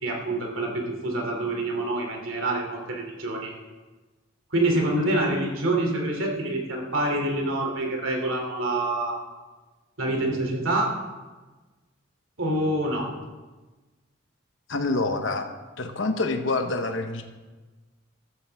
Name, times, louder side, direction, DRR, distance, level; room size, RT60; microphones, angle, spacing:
voice 1, 0.0-3.5 4.5-9.2 10.0-10.9 12.4-13.1, right 1 dB, 80° right, 1 dB, 2.8 m, -26 dB
voice 2, 14.7-15.5 15.8-17.2, left 3 dB, 70° left, 5 dB, 1.0 m, -26 dB
14.5 x 13.5 x 3.5 m, 1.3 s
head